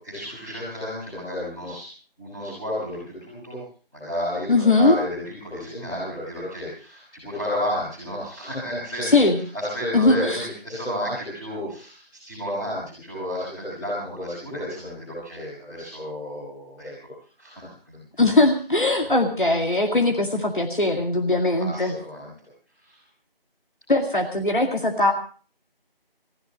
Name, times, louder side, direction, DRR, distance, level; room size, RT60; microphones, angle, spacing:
voice 1, 0.0-1.9 2.2-3.6 3.9-9.2 9.5-17.1 17.4-18.0 21.6-22.3 22.8-23.0, left 1 dB, 5° left, -8 dB, 5.9 m, -32 dB
voice 2, 4.5-5.0 9.0-9.4 9.9-10.5 18.2-21.9 23.9-25.1, left 2 dB, 55° left, 2 dB, 2.2 m, -20 dB
27.5 x 15.5 x 3.0 m, 0.40 s
figure-of-eight pair, 170°, 30 cm